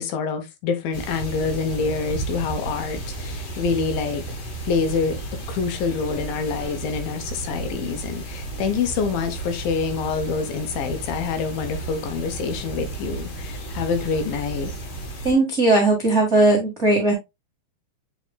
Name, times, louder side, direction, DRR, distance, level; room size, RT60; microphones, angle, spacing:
voice 1, 0.0-4.2 4.6-14.7, left 5 dB, 75° left, 2.5 m, -26 dB
sound 1, 0.9-15.3, right 3 dB, 50° left, 2.3 m, -33 dB
voice 2, 15.2-17.1, right 2 dB, 85° right, 0.6 m, -18 dB
8.4 x 5.0 x 2.3 m
omnidirectional pair, 4.5 m